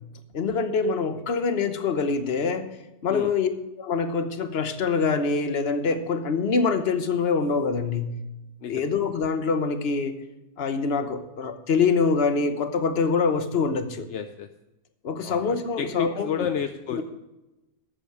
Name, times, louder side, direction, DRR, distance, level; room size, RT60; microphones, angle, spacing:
voice 1, 0.3-2.7 3.0-3.5 3.8-8.1 8.7-10.2 10.6-14.0 15.0-16.5 16.9-17.0, left 5 dB, 45° left, 9 dB, 1.1 m, -25 dB
voice 2, 14.1-14.5 15.2-17.0, left 8 dB, 60° left, 8 dB, 0.8 m, -31 dB
13.0 x 8.4 x 4.8 m, 0.99 s
omnidirectional pair, 1.7 m